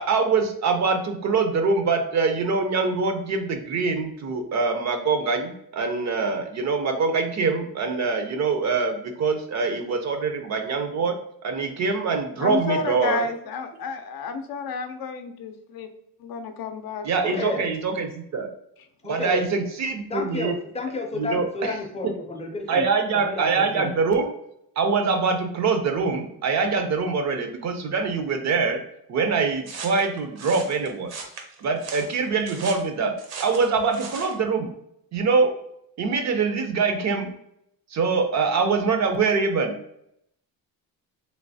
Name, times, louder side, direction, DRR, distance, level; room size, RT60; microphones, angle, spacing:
voice 1, 0.0-11.1 11.4-13.3 17.1-18.5 19.1-20.5 21.2-21.8 22.7-24.3 24.8-28.8 29.1-31.1 31.6-33.1 33.4-34.7 35.1-35.5 36.0-37.3 37.9-39.7, right 4 dB, 45° right, 6 dB, 0.5 m, -24 dB
voice 2, 12.4-15.9 16.2-17.6, left 4 dB, 65° left, 7 dB, 0.5 m, -31 dB
voice 3, 17.2-17.6 19.0-19.5 20.1-22.9 23.1-23.9, left 3 dB, 15° left, 1 dB, 0.5 m, -31 dB
sound 1, 29.6-34.4, right 4 dB, 70° right, 0.8 m, -38 dB
3.2 x 3.0 x 2.6 m, 0.76 s
cardioid pair, 155°, 39 cm